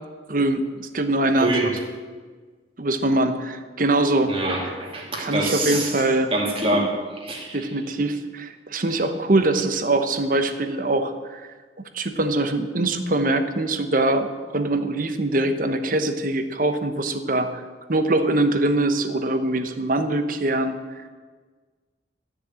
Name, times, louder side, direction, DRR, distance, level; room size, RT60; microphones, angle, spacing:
voice 1, 0.3-1.8 2.8-4.3 5.2-6.3 6.7-6.9 7.5-11.5 11.9-17.6 17.9-20.8, right 2 dB, 45° right, 8 dB, 1.1 m, -23 dB
voice 2, 1.4-1.7 4.3-5.9 6.3-7.6, right 1 dB, 30° right, -1 dB, 2.7 m, -25 dB
13.5 x 6.7 x 8.8 m, 1.4 s
head